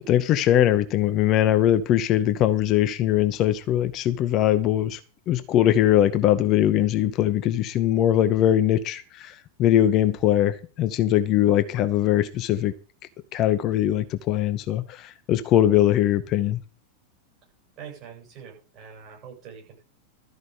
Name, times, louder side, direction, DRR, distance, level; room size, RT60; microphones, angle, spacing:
voice 1, 0.1-5.0 5.3-12.7 13.3-16.6, left 12 dB, 35° left, 12 dB, 0.8 m, -21 dB
voice 2, 17.8-19.8, right 7 dB, 35° right, -1 dB, 7.8 m, -44 dB
13.0 x 5.3 x 8.2 m, 0.37 s
figure-of-eight pair, 90°, 0 cm